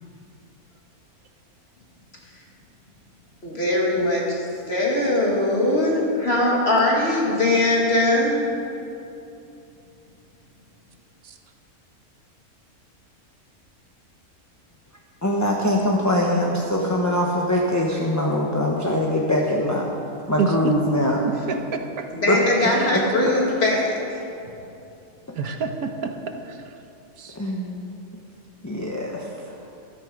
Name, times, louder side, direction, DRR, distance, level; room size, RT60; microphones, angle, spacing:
voice 1, 3.4-4.4 4.7-8.5 22.1-24.2, left 1 dB, 45° left, -3 dB, 2.5 m, -21 dB
voice 2, 15.2-19.9 20.3-21.2 22.3-23.3 27.3-27.9 28.6-29.6, left 1 dB, 15° left, -2 dB, 1.0 m, -23 dB
voice 3, 20.4-20.7 21.5-22.1 22.8-22.9 25.3-26.6 27.2-27.4, right 5 dB, 80° right, 6 dB, 1.4 m, -28 dB
13.5 x 13.0 x 5.1 m, 2.8 s
omnidirectional pair, 1.6 m